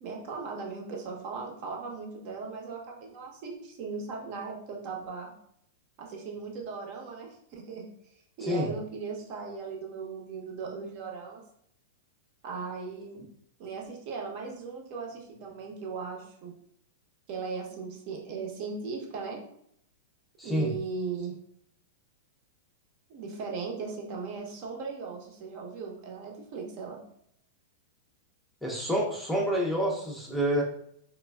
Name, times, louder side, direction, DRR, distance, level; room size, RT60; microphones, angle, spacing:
voice 1, 0.0-5.3 6.0-7.9 8.4-11.4 12.4-13.2 13.6-16.5 17.3-19.4 20.4-21.4 23.1-27.0, right 5 dB, 50° right, 0 dB, 0.7 m, -38 dB
voice 2, 20.4-20.7 28.6-30.6, equal, 5° left, -2 dB, 0.5 m, -28 dB
3.2 x 2.2 x 2.2 m, 0.69 s
hypercardioid pair, 130°, 0 cm